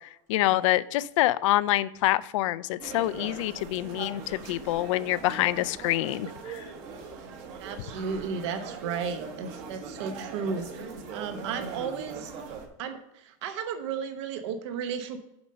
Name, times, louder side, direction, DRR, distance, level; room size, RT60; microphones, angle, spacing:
voice 1, 0.0-6.7, left 16 dB, 70° left, 17 dB, 0.4 m, -26 dB
sound 1, 2.8-12.7, right 5 dB, 40° right, 1.2 m, -41 dB
voice 2, 7.6-10.7 11.1-12.3 12.8-15.2, right 6 dB, 60° right, 8 dB, 0.9 m, -34 dB
7.1 x 5.3 x 5.5 m, 0.84 s
supercardioid pair, 170°, 17 cm